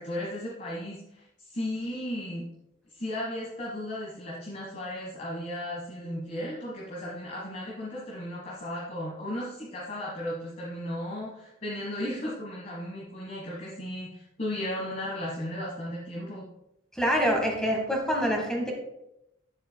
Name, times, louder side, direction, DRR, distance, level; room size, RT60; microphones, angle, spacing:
voice 1, 0.0-2.5 2.9-16.4, left 1 dB, 40° left, -4 dB, 1.4 m, -35 dB
voice 2, 17.0-18.7, equal, 5° left, 0 dB, 1.6 m, -26 dB
10.0 x 7.4 x 2.2 m, 0.85 s
head